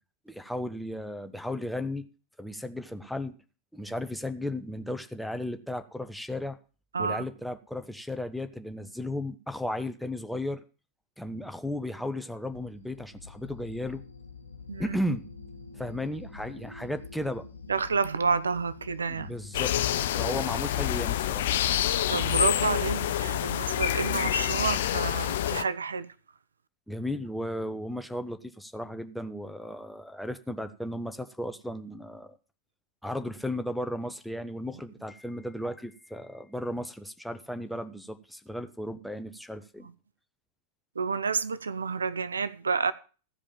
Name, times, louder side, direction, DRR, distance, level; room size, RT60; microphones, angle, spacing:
voice 1, 0.3-2.0 2.4-3.3 3.7-6.6 7.0-10.6 11.2-14.0 14.8-15.2 15.7-17.4 19.1-19.7 20.1-21.5 26.9-32.4 33.0-39.9, left 1 dB, ahead, 0.9 m, -35 dB
sound 1, 12.5-22.6, left 4 dB, 80° left, 1.0 m, -46 dB
voice 2, 17.7-19.3 22.1-26.1 41.0-42.9, right 5 dB, 75° right, 0.5 m, -29 dB
sound 2, 19.5-25.6, left 12 dB, 55° left, 0.5 m, -27 dB
14.5 x 5.1 x 6.9 m
figure-of-eight pair, 90°, 0 cm